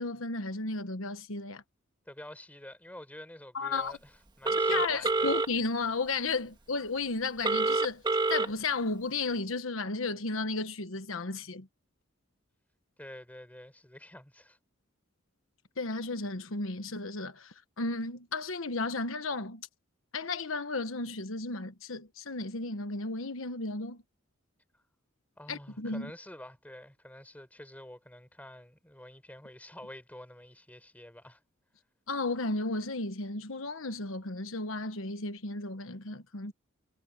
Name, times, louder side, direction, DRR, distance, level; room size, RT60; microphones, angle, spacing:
voice 1, 0.0-1.6 3.5-4.0 4.7-8.0 8.3-11.7 15.8-19.7 20.1-24.0 25.5-26.1 32.1-36.5, left 3 dB, 75° left, 1.3 m, -34 dB
voice 2, 2.1-5.3 13.0-14.6 25.4-31.4, left 1 dB, 10° left, 4.1 m, -48 dB
Telephone, 4.5-5.5 7.4-8.5, right 3 dB, 20° right, 1.5 m, -26 dB
head